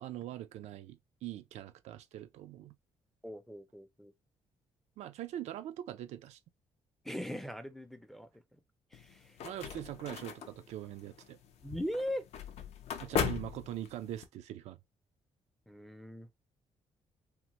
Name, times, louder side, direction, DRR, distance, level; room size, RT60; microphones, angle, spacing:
voice 1, 0.0-2.8 5.0-6.4 9.4-11.4 13.0-14.8, right 12 dB, 75° right, 0.4 m, -42 dB
voice 2, 3.2-4.1 7.0-8.6 8.9-9.4 9.8-9.9 11.6-12.3 15.7-16.3, equal, ahead, 0.4 m, -40 dB
sound 1, 8.9-14.3, left 7 dB, 70° left, 0.5 m, -39 dB
2.9 x 2.1 x 2.9 m
cardioid pair, 130°, 11 cm